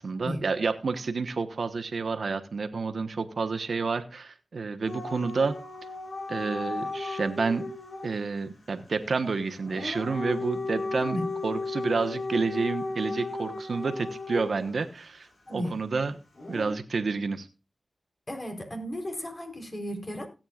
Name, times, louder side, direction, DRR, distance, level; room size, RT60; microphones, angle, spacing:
voice 1, 0.0-5.5 6.3-7.6 8.0-16.2 16.5-17.5, right 4 dB, 80° right, 1.1 m, -29 dB
Dog / Siren, 4.8-8.1 9.6-14.8 16.4-16.7, left 3 dB, 80° left, 3.8 m, -35 dB
voice 2, 18.3-20.3, equal, 45° left, 3.9 m, -34 dB
17.0 x 8.8 x 2.4 m
cardioid pair, 40°, 0 cm